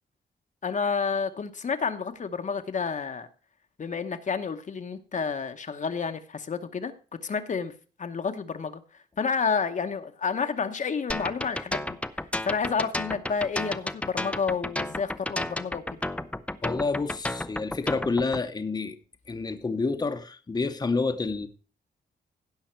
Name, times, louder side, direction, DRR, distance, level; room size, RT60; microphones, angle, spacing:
voice 1, 0.6-3.3 3.8-6.9 7.2-7.7 8.0-8.8 9.2-12.0 12.4-15.8, left 5 dB, 45° left, 0.9 m, -30 dB
sound 1, 11.1-18.4, left 1 dB, 5° left, 0.5 m, -32 dB
voice 2, 16.6-19.0 19.3-21.5, left 3 dB, 25° left, 0.9 m, -28 dB
16.5 x 5.7 x 4.4 m
cardioid pair, 100°, 18 cm